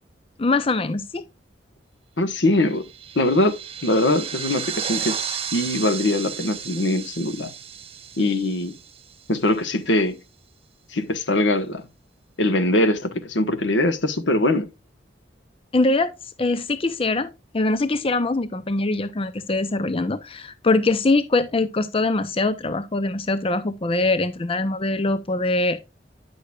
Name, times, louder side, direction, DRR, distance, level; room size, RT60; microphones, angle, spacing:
voice 1, 0.4-1.2 15.7-16.1 16.4-25.8, left 2 dB, 30° left, 0.6 m, -23 dB
voice 2, 2.2-2.8 3.1-3.6 3.8-7.5 8.2-8.8 9.3-10.2 10.9-11.9 12.4-14.7, left 1 dB, 85° left, 1.3 m, -22 dB
sound 1, 2.6-9.5, right 8 dB, 30° right, 0.8 m, -33 dB
10.0 x 6.6 x 2.4 m
head